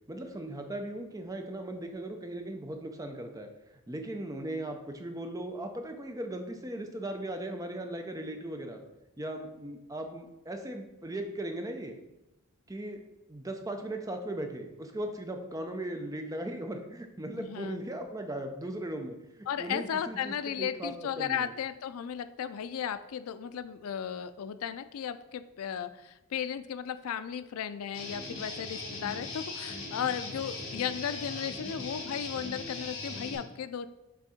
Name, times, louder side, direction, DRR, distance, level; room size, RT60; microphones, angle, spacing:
voice 1, 0.1-3.5 3.9-8.8 9.2-11.9 12.7-13.0 13.3-21.5, right 1 dB, 15° right, 5 dB, 0.5 m, -38 dB
voice 2, 17.3-17.8 19.5-33.9, left 8 dB, 80° left, 11 dB, 0.4 m, -35 dB
Guitar, 27.9-33.4, left 3 dB, 60° left, 1.4 m, -39 dB
6.2 x 3.5 x 4.2 m, 0.96 s
head